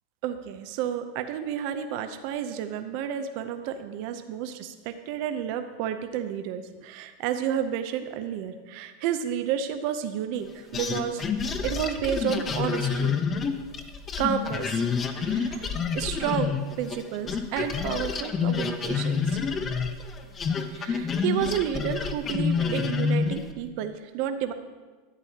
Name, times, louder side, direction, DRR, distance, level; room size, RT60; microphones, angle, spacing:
voice 1, 0.2-13.2 14.2-14.8 15.1-19.4 20.7-24.5, right 9 dB, 55° right, 8 dB, 0.6 m, -31 dB
sound 1, 10.7-17.0 17.3-23.5, left 5 dB, 25° left, 0.6 m, -28 dB
11.0 x 8.3 x 2.8 m, 1.3 s
supercardioid pair, 130°, 0 cm